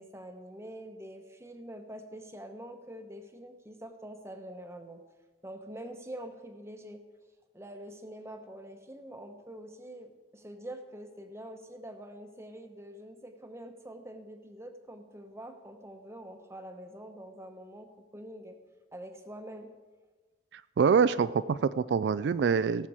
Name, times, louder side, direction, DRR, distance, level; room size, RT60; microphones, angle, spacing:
voice 1, 0.0-5.0 5.4-7.0 7.5-18.6 18.9-19.7, right 1 dB, 15° right, 6 dB, 0.9 m, -45 dB
voice 2, 20.5-22.9, right 6 dB, 75° right, 14 dB, 0.3 m, -25 dB
17.0 x 7.5 x 4.8 m, 1.3 s
head